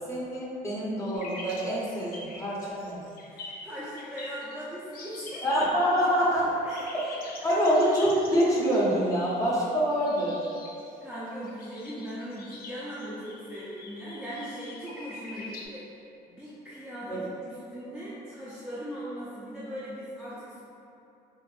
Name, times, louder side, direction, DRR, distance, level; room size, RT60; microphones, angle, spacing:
voice 1, 0.0-3.0 5.4-6.5 6.9-7.1 7.4-10.4 17.1-17.2, equal, 20° left, -7 dB, 0.8 m, -26 dB
sound 1, 1.1-4.6 4.9-6.3 6.6-15.7, left 2 dB, 60° left, 0.5 m, -45 dB
voice 2, 3.3-5.4 6.6-6.9 7.5-7.6 11.0-15.9 16.3-20.6, equal, 5° right, -11 dB, 0.5 m, -39 dB
5.0 x 2.0 x 2.5 m, 2.7 s
cardioid pair, 110°, 17 cm